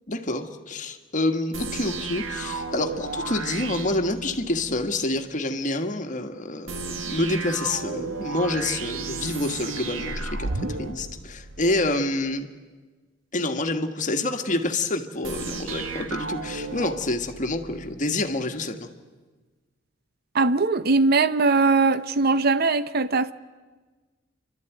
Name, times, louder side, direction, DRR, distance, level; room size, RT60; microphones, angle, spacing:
voice 1, 0.1-10.5 10.8-12.5 13.3-18.9, left 2 dB, 40° left, 1.5 m, -27 dB
sound 1, 1.5-4.8 6.7-11.9 15.2-17.9, right 4 dB, 90° right, 1.5 m, -33 dB
voice 2, 20.3-23.3, right 3 dB, 55° right, 0.7 m, -20 dB
29.5 x 12.5 x 9.2 m
head